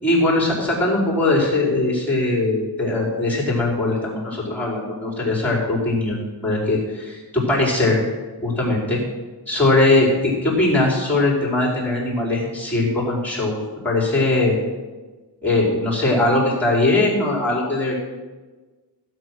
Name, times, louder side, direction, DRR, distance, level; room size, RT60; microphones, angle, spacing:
voice 1, 0.0-8.0 8.4-9.0 9.5-10.1 10.4-13.6 13.8-14.6 15.4-18.0, left 2 dB, 5° left, -4 dB, 4.6 m, -20 dB
16.0 x 8.0 x 6.3 m, 1.3 s
wide cardioid pair, 150°, 45 cm